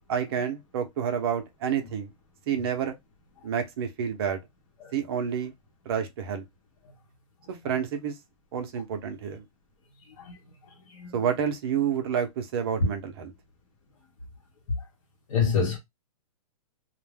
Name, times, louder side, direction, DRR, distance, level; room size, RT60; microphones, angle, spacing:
voice 1, 0.1-2.1 2.5-3.0 3.4-4.4 4.9-5.5 5.9-6.4 7.5-8.2 8.5-9.4 11.1-13.3, right 8 dB, 40° right, 0.6 m, -29 dB
voice 2, 10.0-11.2 14.8-14.9 15.3-15.8, left 6 dB, 60° left, 0.9 m, -30 dB
2.5 x 2.1 x 3.2 m
hypercardioid pair, 160°, 19 cm